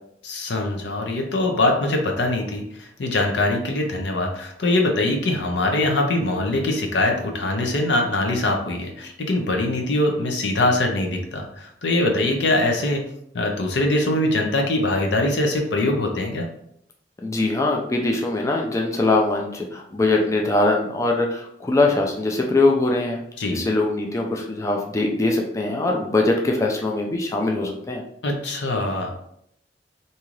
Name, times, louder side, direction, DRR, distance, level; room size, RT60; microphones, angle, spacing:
voice 1, 0.2-13.1 13.3-16.4 23.4-23.6 28.2-29.1, left 2 dB, 85° left, 2 dB, 0.6 m, -22 dB
voice 2, 17.2-23.2 23.5-28.0, left 2 dB, 15° left, 0 dB, 0.3 m, -22 dB
2.7 x 2.4 x 3.1 m, 0.72 s
head